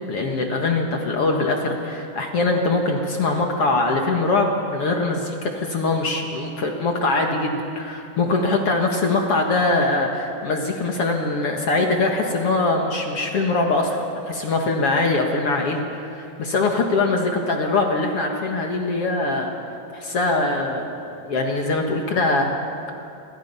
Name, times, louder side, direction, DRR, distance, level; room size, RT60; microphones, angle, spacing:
voice 1, 0.1-22.5, left 3 dB, 65° left, 2 dB, 1.4 m, -22 dB
29.0 x 23.0 x 5.6 m, 2.8 s
omnidirectional pair, 5.2 m